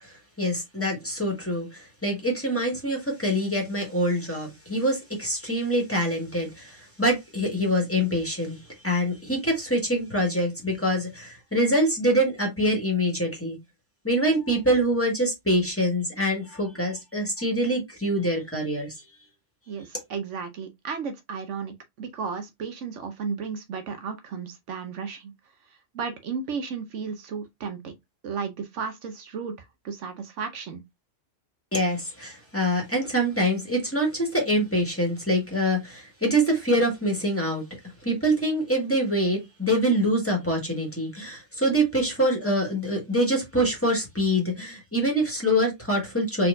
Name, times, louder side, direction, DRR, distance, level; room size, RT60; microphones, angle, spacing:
voice 1, 0.0-13.6 14.0-19.0 31.7-37.6 38.0-46.5, equal, 10° left, 1.7 m, -25 dB
voice 2, 19.7-25.3 25.9-27.9 28.2-29.5 29.8-30.8, right 5 dB, 75° right, 1.1 m, -34 dB
4.3 x 4.1 x 2.6 m
omnidirectional pair, 1.3 m